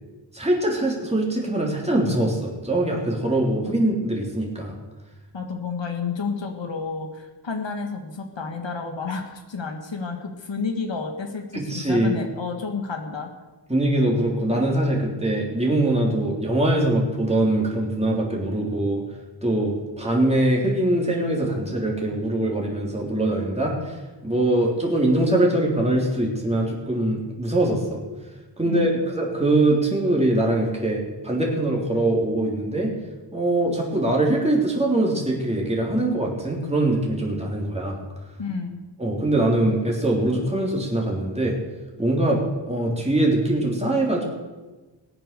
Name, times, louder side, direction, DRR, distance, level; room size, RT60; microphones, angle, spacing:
voice 1, 0.3-4.7 11.5-12.1 13.7-19.0 19.4-28.0 28.6-32.9 33.3-38.0 39.0-41.6 42.0-44.2, right 1 dB, 15° right, -2 dB, 3.3 m, -22 dB
voice 2, 5.3-13.3 28.7-29.1 38.4-38.8, left 4 dB, 75° left, 3 dB, 1.8 m, -30 dB
19.0 x 9.0 x 6.8 m, 1.2 s
wide cardioid pair, 85°, 44 cm